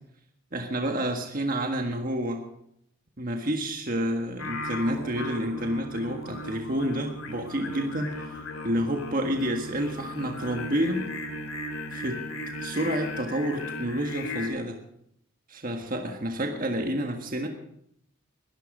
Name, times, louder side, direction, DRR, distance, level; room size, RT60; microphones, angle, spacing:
voice 1, 0.5-2.4 3.2-11.1 11.9-12.2 12.6-14.8 15.5-17.5, equal, 40° right, 3 dB, 1.6 m, -29 dB
Singing, 4.4-14.5, left 1 dB, 80° left, 3.3 m, -36 dB
21.5 x 12.0 x 5.0 m, 0.74 s
head